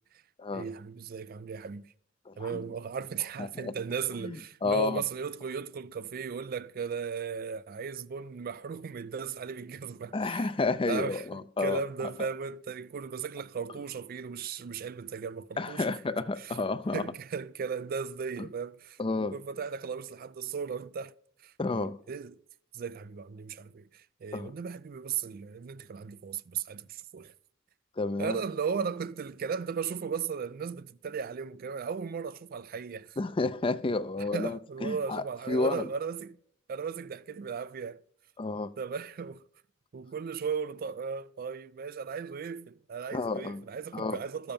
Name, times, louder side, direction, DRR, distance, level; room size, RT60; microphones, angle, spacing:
voice 1, 0.5-1.9 2.4-15.9 16.4-16.6 16.9-21.1 21.4-22.4 22.7-27.3 28.2-33.2 34.2-36.4 36.7-38.0 38.8-39.4 39.9-44.5, right 6 dB, 45° right, 0.4 m, -36 dB
voice 2, 2.3-2.7 3.4-3.7 4.2-5.0 10.1-12.1 15.6-17.1 18.4-18.5 19.0-19.4 21.6-22.0 24.3-24.5 28.0-28.4 33.2-35.9 38.4-38.7 43.1-43.6 43.9-44.2, left 3 dB, 25° left, 0.5 m, -31 dB
13.0 x 7.1 x 5.1 m
head